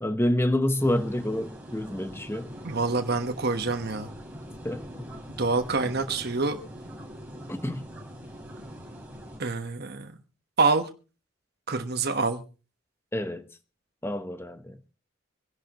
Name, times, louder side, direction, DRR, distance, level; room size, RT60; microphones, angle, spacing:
voice 1, 0.0-2.5 4.6-5.1 7.5-7.8 13.1-13.4 14.0-14.8, left 1 dB, 10° left, 0.9 m, -28 dB
sound 1, 0.8-9.4, equal, 5° right, 3.8 m, -43 dB
voice 2, 2.6-4.1 5.4-6.6 9.4-10.1 10.6-10.9 11.7-12.4, right 3 dB, 50° right, 1.2 m, -26 dB
26.0 x 11.0 x 3.0 m
head